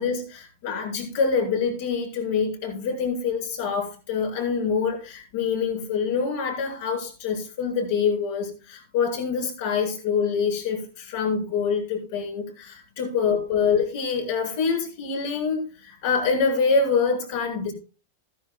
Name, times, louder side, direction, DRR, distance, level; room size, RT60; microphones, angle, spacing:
voice 1, 0.0-17.7, left 5 dB, 60° left, 1 dB, 7.2 m, -25 dB
16.0 x 14.0 x 2.3 m, 0.35 s
supercardioid pair, 140°, 0 cm